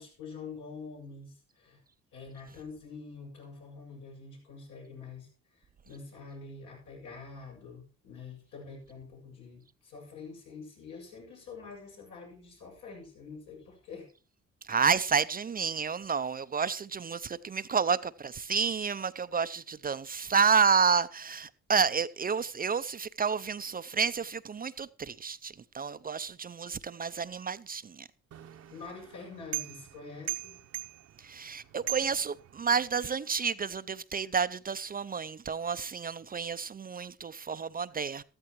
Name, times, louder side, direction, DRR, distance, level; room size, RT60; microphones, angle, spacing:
voice 1, 0.0-1.8 2.1-14.1 28.7-30.6, left 4 dB, 80° left, 7.1 m, -46 dB
voice 2, 14.6-28.1 31.2-38.2, right 6 dB, 30° right, 0.5 m, -30 dB
sound 1, 28.3-33.0, right 17 dB, 55° right, 0.8 m, -41 dB
13.5 x 13.5 x 3.1 m
cardioid pair, 90°, 30 cm